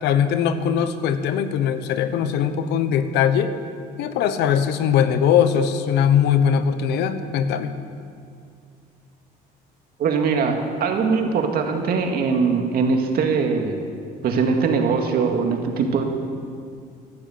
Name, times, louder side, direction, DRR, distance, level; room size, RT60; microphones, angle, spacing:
voice 1, 0.0-3.5 4.0-7.7, left 8 dB, 85° left, 11 dB, 1.1 m, -20 dB
voice 2, 10.0-13.8 14.2-16.0, right 5 dB, 65° right, 3 dB, 2.3 m, -21 dB
14.5 x 12.0 x 7.9 m, 2.3 s
cardioid pair, 110°, 17 cm